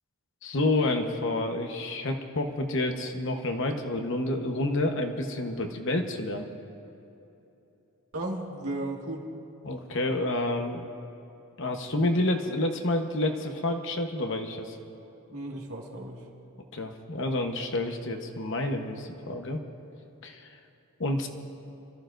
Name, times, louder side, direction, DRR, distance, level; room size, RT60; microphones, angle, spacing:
voice 1, 0.4-6.5 9.6-10.8 11.6-14.8 16.7-19.6 20.2-20.5 21.0-21.3, left 2 dB, 55° left, 4 dB, 1.1 m, -29 dB
voice 2, 8.1-9.3 15.3-16.3, right 1 dB, 75° right, -1 dB, 2.0 m, -35 dB
28.5 x 14.0 x 2.6 m, 2.9 s
head